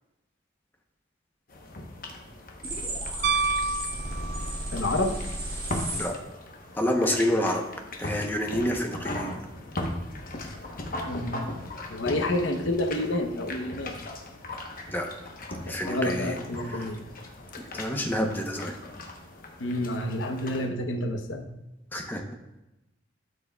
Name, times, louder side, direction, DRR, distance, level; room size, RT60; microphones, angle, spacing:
sound 1, 1.5-20.7, left 1 dB, 50° left, 1.0 m, -39 dB
sound 2, 2.6-6.0, right 1 dB, 30° right, 2.3 m, -33 dB
Piano, 3.2-4.8 7.2-7.3, right 4 dB, 60° right, 0.5 m, -28 dB
voice 1, 4.7-5.2 11.0-11.4 11.9-13.9 15.8-17.0 19.6-21.5, left 1 dB, 90° left, 5 dB, 0.9 m, -29 dB
voice 2, 6.8-7.6 8.0-9.3 14.9-15.1 15.7-16.4 16.7-16.9 17.6-18.7 21.9-22.2, left 1 dB, 10° left, 3 dB, 0.8 m, -28 dB
12.0 x 6.2 x 2.3 m, 0.96 s
head